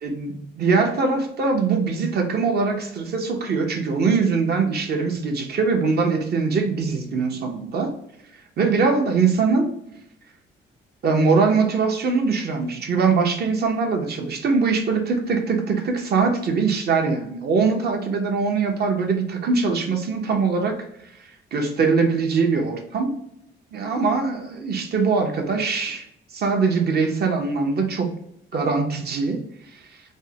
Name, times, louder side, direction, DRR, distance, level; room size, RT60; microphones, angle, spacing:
voice 1, 0.0-7.9 8.6-9.7 11.0-20.8 21.0-23.2 23.7-26.1 26.3-28.1 28.5-29.4 29.7-29.8, right 4 dB, 55° right, 3 dB, 0.8 m, -22 dB
3.5 x 2.1 x 2.7 m, 0.76 s
cardioid pair, 90°, 20 cm